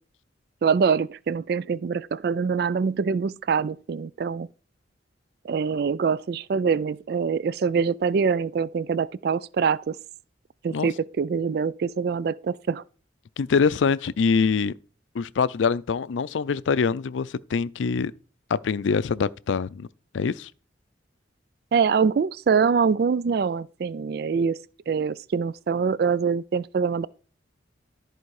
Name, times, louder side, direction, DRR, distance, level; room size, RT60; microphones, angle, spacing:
voice 1, 0.6-4.5 5.4-10.0 10.6-12.8 21.7-24.6 24.9-27.1, right 6 dB, 55° right, 0.3 m, -24 dB
voice 2, 13.4-14.7 15.1-18.1 18.5-19.9 20.1-20.5, left 5 dB, 85° left, 0.4 m, -24 dB
13.5 x 4.6 x 4.8 m
head